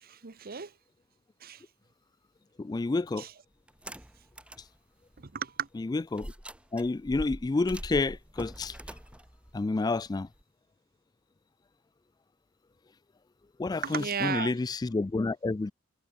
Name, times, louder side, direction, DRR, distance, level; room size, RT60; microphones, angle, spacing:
voice 1, 0.0-0.7 1.4-1.6 3.2-3.3 5.2-5.7 13.8-14.6, right 7 dB, 45° right, 1.0 m, -34 dB
voice 2, 2.6-3.3 5.8-6.3 6.7-8.8 9.5-10.3 13.6-15.7, left 3 dB, 20° left, 0.3 m, -29 dB
sound 1, 3.7-4.7 5.1-5.2 6.1-10.4, equal, 5° right, 1.6 m, -43 dB
head